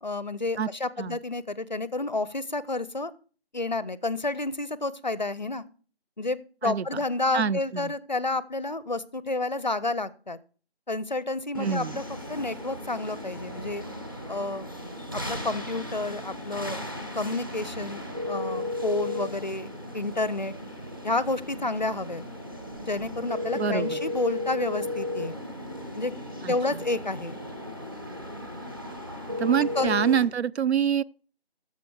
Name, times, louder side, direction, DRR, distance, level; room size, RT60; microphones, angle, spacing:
voice 1, 0.0-3.1 3.5-5.6 6.2-10.4 10.9-12.0 12.3-13.8 14.3-14.7 15.1-16.8 17.2-19.7 19.9-20.5 21.0-22.2 22.9-25.3 26.0-26.1 26.5-27.4 29.8-30.0, left 2 dB, 45° left, 0.5 m, -30 dB
voice 2, 7.3-7.9 11.6-12.0 23.6-24.0 26.4-26.6 29.4-31.0, right 7 dB, 90° right, 0.5 m, -26 dB
sound 1, 11.5-30.2, equal, 20° right, 1.0 m, -39 dB
sound 2, 18.1-19.3 23.3-25.3 29.3-30.2, left 3 dB, 40° right, 0.6 m, -31 dB
11.0 x 6.8 x 4.7 m
figure-of-eight pair, 165°, 31 cm